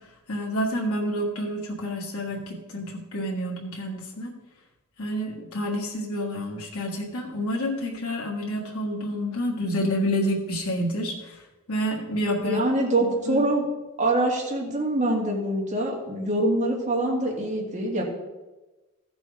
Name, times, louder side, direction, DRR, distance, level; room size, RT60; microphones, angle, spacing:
voice 1, 0.3-4.3 5.0-11.4 11.7-12.6 13.0-13.4, equal, 80° left, -3 dB, 1.6 m, -29 dB
voice 2, 12.4-13.6 14.0-18.0, right 1 dB, 35° right, -2 dB, 2.5 m, -24 dB
14.5 x 6.3 x 4.8 m, 1.1 s
head